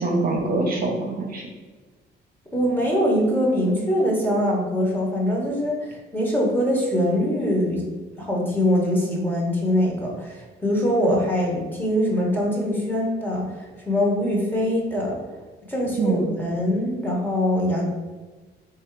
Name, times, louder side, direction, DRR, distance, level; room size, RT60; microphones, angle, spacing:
voice 1, 0.0-1.5 16.0-16.3, right 3 dB, 45° right, 1 dB, 0.9 m, -24 dB
voice 2, 2.5-7.8 8.2-15.2 15.7-17.8, equal, 10° left, -2 dB, 1.3 m, -23 dB
3.5 x 2.8 x 4.7 m, 1.3 s
cardioid pair, 90°, 20 cm